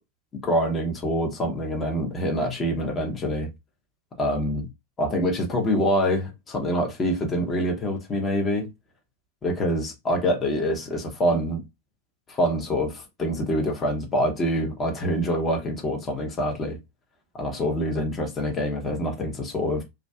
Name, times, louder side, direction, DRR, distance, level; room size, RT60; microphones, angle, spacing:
voice 1, 0.4-3.5 4.2-4.7 5.0-8.7 9.4-11.6 12.3-16.8 17.4-19.8, equal, 20° left, 0.7 m, -25 dB
2.3 x 2.3 x 2.2 m
figure-of-eight pair, 90°, 0 cm